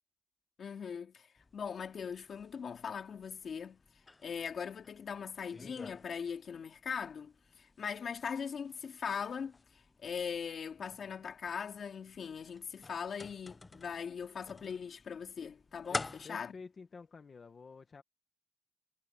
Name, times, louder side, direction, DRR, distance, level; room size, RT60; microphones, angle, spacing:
voice 1, 0.6-1.3 1.5-3.8 4.2-16.5, left 6 dB, 70° left, 2.6 m, -40 dB
sound 1, 1.4-16.3, left 3 dB, 25° left, 0.7 m, -49 dB
voice 2, 15.9-18.0, left 4 dB, 45° left, 1.5 m, -51 dB
wide cardioid pair, 175°, 0 cm